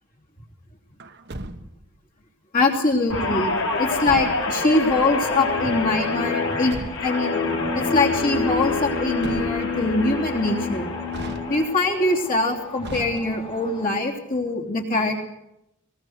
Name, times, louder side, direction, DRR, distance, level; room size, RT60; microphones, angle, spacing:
Truck, 1.0-2.0 3.8-4.6 6.3-7.3 8.9-9.9 11.1-11.9 12.8-13.7, right 1 dB, 50° right, 1.2 m, -37 dB
voice 1, 2.5-6.8 7.0-7.4 7.7-10.9 11.5-15.2, left 2 dB, 40° left, 1 dB, 3.2 m, -23 dB
Guitar, 3.1-11.7 12.1-12.4, left 3 dB, 70° left, 5.6 m, -26 dB
sound 1, 5.3-14.0, left 1 dB, 25° left, 2.1 m, -41 dB
20.5 x 20.5 x 6.6 m, 0.85 s
head